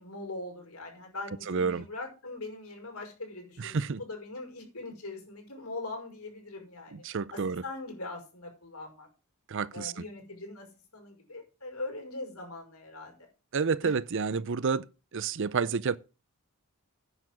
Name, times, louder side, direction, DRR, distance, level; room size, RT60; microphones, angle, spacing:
voice 1, 0.0-7.0 7.3-9.1 9.7-13.2 13.8-13.9, left 2 dB, 80° left, 5.6 m, -41 dB
voice 2, 1.5-1.9 3.6-4.0 7.0-7.6 9.5-9.9 13.5-14.8 15.1-16.0, right 5 dB, 55° right, 0.6 m, -29 dB
9.8 x 7.1 x 7.6 m
head